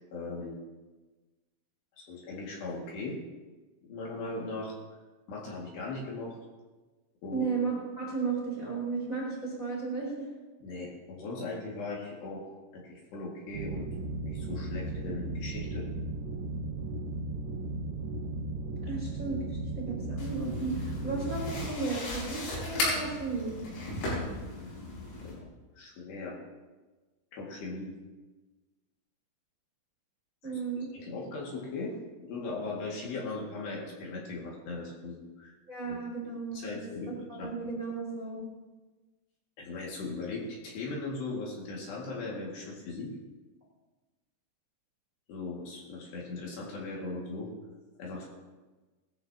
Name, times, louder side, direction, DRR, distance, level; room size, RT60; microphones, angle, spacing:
voice 1, 0.1-0.6 2.0-3.2 3.8-5.0 5.3-6.4 7.2-7.5 10.6-13.9 14.2-15.9 25.2-25.4 25.8-26.4 27.3-27.9 30.9-31.9 32.2-35.5 35.9-36.0 36.5-37.1 37.4-37.5 39.6-43.1 45.3-47.5 48.0-48.3, left 3 dB, 60° left, -3 dB, 4.0 m, -38 dB
voice 2, 7.3-10.3 18.8-23.6 30.4-30.9 35.7-36.8 37.3-38.5, right 4 dB, 20° right, -5 dB, 3.0 m, -34 dB
sound 1, 13.5-21.7, right 2 dB, 80° right, 3.7 m, -36 dB
sound 2, 20.2-25.3, left 2 dB, 85° left, 8.3 m, -36 dB
20.0 x 14.0 x 2.9 m, 1.2 s
omnidirectional pair, 5.9 m